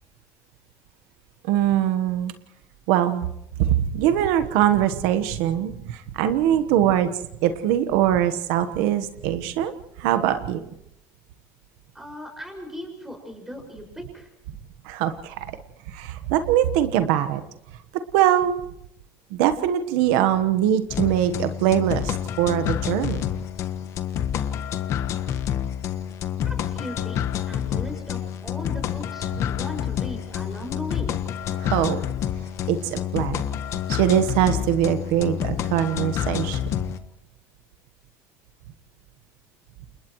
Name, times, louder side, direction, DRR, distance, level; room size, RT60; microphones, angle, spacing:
voice 1, 1.4-2.3 2.9-3.3 3.8-7.1 7.4-9.7 10.0-10.6 14.8-15.5 15.9-17.4 18.1-18.5 19.3-23.2 31.5-32.0 32.7-33.4 33.9-36.6, right 11 dB, 80° right, 9 dB, 1.3 m, -22 dB
voice 2, 11.9-14.3 26.4-31.1, left 1 dB, 5° right, 2 dB, 6.1 m, -38 dB
sound 1, 20.9-37.0, left 9 dB, 45° left, 1.3 m, -28 dB
29.5 x 29.0 x 3.2 m, 0.82 s
cardioid pair, 145°, 7 cm